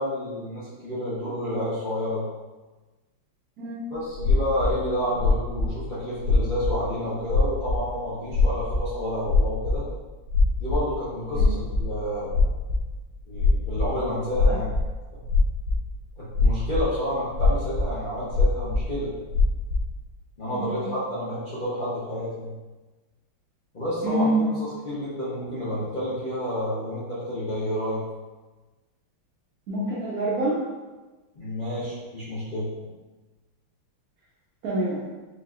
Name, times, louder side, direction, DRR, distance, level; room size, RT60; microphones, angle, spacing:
voice 1, 0.0-2.2 3.9-9.8 10.6-12.5 13.3-14.7 15.1-15.2 16.2-19.1 20.4-22.5 23.7-24.3 24.8-28.0 31.4-32.7, equal, 50° left, -10 dB, 0.5 m, -30 dB
sound 1, 4.2-4.8 5.1-5.7 6.2-6.8 7.2-8.0 8.3-9.8 10.3-10.8 11.1-11.8 12.3-12.8 13.3-13.9 14.3-14.9 15.2-15.9 16.3-16.8 17.1-17.9 18.3-18.8 19.3-19.9, left 3 dB, 80° left, 1.5 m, -21 dB
voice 2, 20.5-20.9 24.0-24.5 29.7-30.6 34.6-35.1, right 1 dB, 65° right, -6 dB, 0.9 m, -26 dB
5.1 x 2.6 x 2.4 m, 1.2 s
omnidirectional pair, 2.2 m